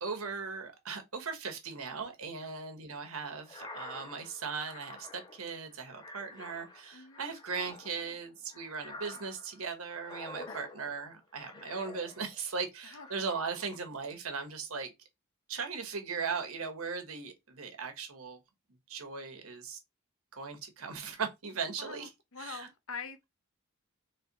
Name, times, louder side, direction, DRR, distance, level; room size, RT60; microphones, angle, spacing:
voice 1, 0.0-14.9 15.5-18.4 18.9-19.8 20.3-22.1 22.4-22.7, right 5 dB, 85° right, 1.2 m, -38 dB
sound 1, 3.4-12.5 12.9-13.9, left 3 dB, 20° left, 0.7 m, -49 dB
voice 2, 21.8-23.2, left 5 dB, 70° left, 0.7 m, -44 dB
3.4 x 3.3 x 4.1 m
head